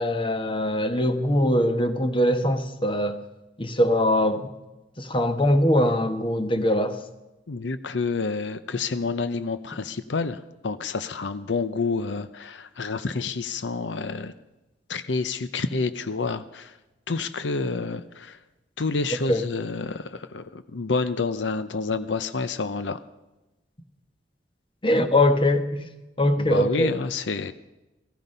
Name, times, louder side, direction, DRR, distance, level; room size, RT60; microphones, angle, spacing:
voice 1, 0.0-3.2 3.6-4.4 5.0-7.0 19.3-19.4 24.8-25.9 26.2-27.0, left 1 dB, 30° left, 8 dB, 1.2 m, -22 dB
voice 2, 7.5-14.3 14.9-16.7 17.1-18.4 18.8-23.0 26.4-27.5, left 4 dB, 85° left, 12 dB, 0.7 m, -29 dB
17.0 x 14.5 x 5.5 m, 1.0 s
head